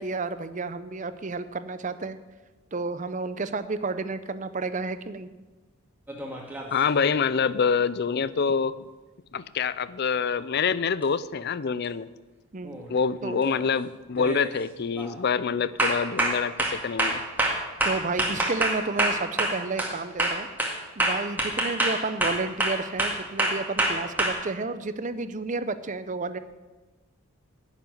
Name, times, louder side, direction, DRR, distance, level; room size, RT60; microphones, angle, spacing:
voice 1, 0.0-2.2 2.7-5.3 12.5-12.8 13.2-13.4 17.8-20.5 21.0-26.4, right 3 dB, 35° right, 12 dB, 0.6 m, -31 dB
sound 1, 6.1-6.8 11.0-11.1 12.6-12.9 13.4-13.7 14.2-14.5 15.0-15.2 15.8-19.9 20.2-24.3, right 1 dB, 10° right, 1.9 m, -26 dB
voice 2, 6.7-8.8 9.3-12.1 12.9-17.2, left 6 dB, 50° left, 17 dB, 0.4 m, -26 dB
11.0 x 7.6 x 9.3 m, 1.2 s
head